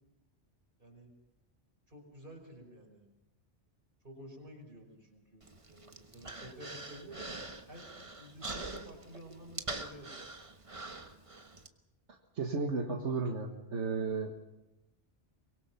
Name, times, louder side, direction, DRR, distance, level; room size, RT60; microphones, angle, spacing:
voice 1, 0.8-1.1 1.9-3.0 4.0-7.3 7.7-7.9 8.2-10.2, right 1 dB, 50° right, 1 dB, 5.6 m, -51 dB
Human voice, 5.4-11.7, right 2 dB, 30° right, 1.3 m, -44 dB
voice 2, 12.4-14.3, right 4 dB, 90° right, 2 dB, 1.8 m, -33 dB
24.0 x 22.5 x 5.9 m, 0.97 s
omnidirectional pair, 1.2 m